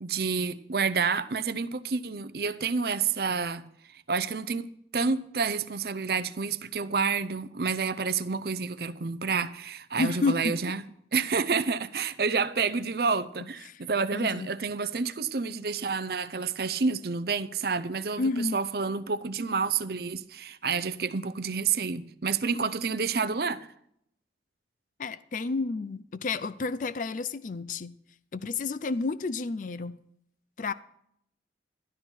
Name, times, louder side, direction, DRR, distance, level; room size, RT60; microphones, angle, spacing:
voice 1, 0.0-3.7 4.1-4.7 4.9-10.8 11.1-23.7, right 5 dB, 55° right, 0.6 m, -29 dB
voice 2, 10.0-10.5 13.6-13.8 14.1-14.5 18.2-18.6 25.0-27.9 28.3-30.0 30.6-30.7, left 3 dB, 45° left, 0.4 m, -30 dB
12.5 x 12.0 x 4.5 m
head